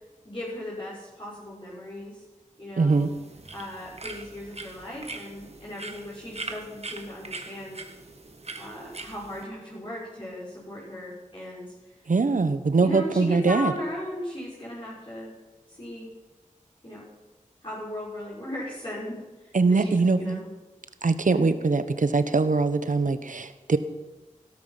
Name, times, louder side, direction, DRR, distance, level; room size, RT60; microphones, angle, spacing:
voice 1, 0.2-2.2 2.6-3.1 3.5-7.8 8.5-11.9 12.8-15.3 15.7-16.1 16.8-17.1 17.6-20.5 21.3-21.5, left 1 dB, 40° left, -8 dB, 6.2 m, -37 dB
voice 2, 2.8-3.1 12.1-13.7 19.5-20.4 21.0-23.8, right 4 dB, 70° right, 11 dB, 1.1 m, -22 dB
sound 1, 2.9-9.4, right 3 dB, 50° right, 1.5 m, -41 dB
17.0 x 12.5 x 5.9 m, 1.1 s
wide cardioid pair, 60°, 14 cm